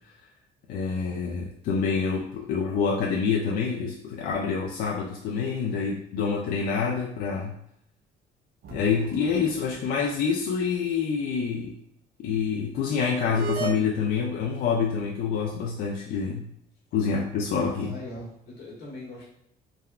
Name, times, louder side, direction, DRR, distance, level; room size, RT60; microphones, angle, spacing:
voice 1, 0.7-7.6 8.7-11.7 12.2-16.5 16.9-18.0, left 5 dB, 60° left, -1 dB, 0.4 m, -27 dB
sound 1, 8.6-10.3 10.6-10.7 13.3-13.8, right 6 dB, 65° right, 0.5 m, -36 dB
voice 2, 17.6-19.3, left 1 dB, 80° left, -4 dB, 1.1 m, -41 dB
3.5 x 2.1 x 2.2 m, 0.76 s
cardioid pair, 110°, 17 cm